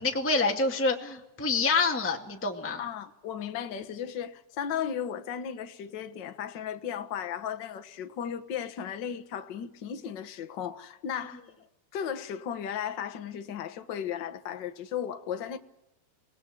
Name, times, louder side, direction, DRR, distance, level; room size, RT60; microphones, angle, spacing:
voice 1, 0.0-2.8, left 3 dB, 5° left, 1.6 m, -27 dB
voice 2, 2.8-11.4 11.9-15.6, left 8 dB, 50° left, 1.4 m, -35 dB
27.0 x 19.0 x 7.9 m
omnidirectional pair, 3.6 m